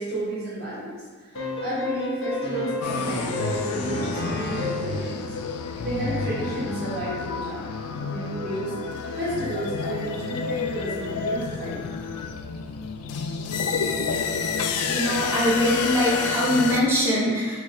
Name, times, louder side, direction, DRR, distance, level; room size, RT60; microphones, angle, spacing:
voice 1, 0.0-5.3 5.8-7.7 7.9-8.7 9.1-11.9, right 1 dB, 45° right, -9 dB, 1.3 m, -32 dB
sound 1, 1.3-5.0, left 1 dB, 55° left, 0.9 m, -31 dB
sound 2, 2.8-16.8, left 5 dB, 85° left, 0.4 m, -29 dB
voice 2, 14.9-17.6, equal, 10° right, -7 dB, 0.9 m, -22 dB
4.9 x 2.7 x 3.9 m, 1.5 s
head